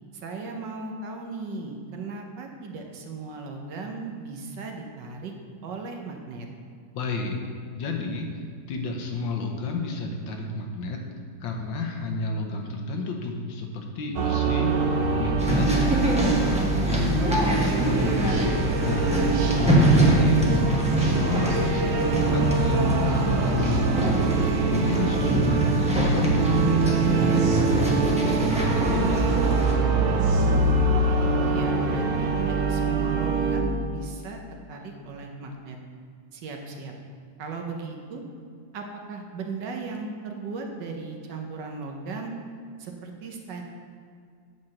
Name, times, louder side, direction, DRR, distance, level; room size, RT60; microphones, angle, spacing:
voice 1, 0.1-5.3 5.6-6.5 19.7-20.3 30.3-30.7 31.1-34.4 34.7-35.8 36.3-36.9 37.4-38.2 38.7-42.3 42.8-43.6, right 4 dB, 65° right, 2 dB, 1.4 m, -37 dB
voice 2, 6.9-7.4 7.8-8.3 8.7-11.0 11.4-18.6 18.8-21.8 22.1-24.2 24.7-29.3, left 3 dB, 70° left, 2 dB, 1.5 m, -31 dB
sound 1, 14.2-33.6, right 4 dB, 85° right, 1.6 m, -24 dB
sound 2, 15.4-29.8, right 1 dB, 5° right, 0.6 m, -25 dB
8.7 x 4.3 x 6.3 m, 2.2 s
omnidirectional pair, 2.2 m